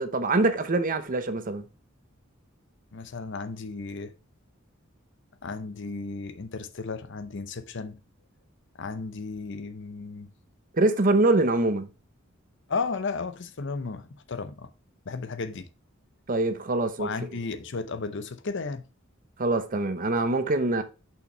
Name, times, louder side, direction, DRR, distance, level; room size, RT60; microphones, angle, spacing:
voice 1, 0.0-1.7 10.7-11.9 16.3-17.1 19.4-20.8, right 2 dB, 45° right, 0.9 m, -24 dB
voice 2, 2.9-4.1 5.4-8.0 8.8-10.3 12.7-14.7 15.1-15.7 17.0-18.8, left 4 dB, 60° left, 0.7 m, -34 dB
6.6 x 5.7 x 3.2 m
head